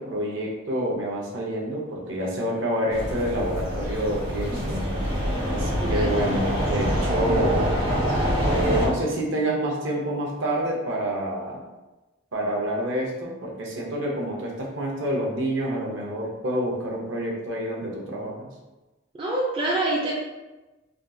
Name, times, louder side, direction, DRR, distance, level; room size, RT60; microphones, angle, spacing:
voice 1, 0.0-4.9 5.5-7.7 8.6-11.6 12.3-18.5, right 1 dB, 65° right, -2 dB, 0.7 m, -28 dB
sound 1, 2.9-8.9, equal, 85° right, 1.2 m, -25 dB
voice 2, 5.8-6.1 19.2-20.1, right 2 dB, 25° right, -4 dB, 0.4 m, -26 dB
3.4 x 2.3 x 2.6 m, 1.1 s
head